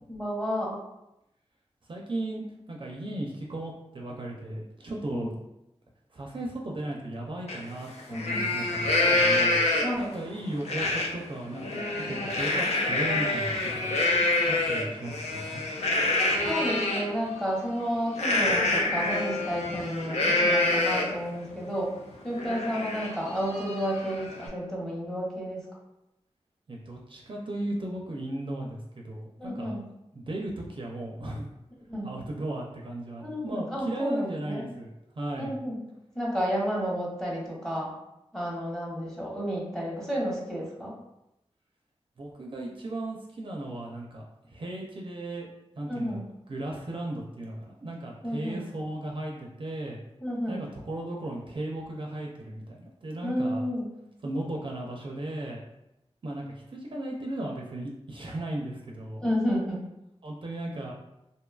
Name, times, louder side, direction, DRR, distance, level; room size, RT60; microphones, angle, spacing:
voice 1, 0.1-0.8 5.1-5.3 8.1-8.5 9.8-10.1 16.4-21.9 22.2-25.7 29.4-29.9 31.9-32.1 33.2-34.7 35.4-35.8 36.1-37.9 38.3-41.0 45.9-46.2 48.2-48.6 50.2-50.7 53.2-53.9 59.2-59.9, equal, 5° left, -4 dB, 0.8 m, -31 dB
voice 2, 1.9-5.3 6.1-9.6 10.0-15.6 26.7-28.8 29.0-29.8 30.1-31.5 32.0-34.9 35.2-35.5 42.2-45.5 45.8-46.2 46.5-50.0 50.5-53.6 54.2-55.6 56.2-56.4 56.7-59.2 60.2-60.9, right 1 dB, 50° right, -1 dB, 0.4 m, -36 dB
Livestock farm animals working animals, 7.5-7.6 8.0-10.1 10.6-11.1 11.5-17.0 18.1-21.2 21.7-21.8 22.1-24.5, left 2 dB, 90° left, 0.4 m, -26 dB
2.6 x 2.2 x 2.3 m, 0.88 s
cardioid pair, 55°, 11 cm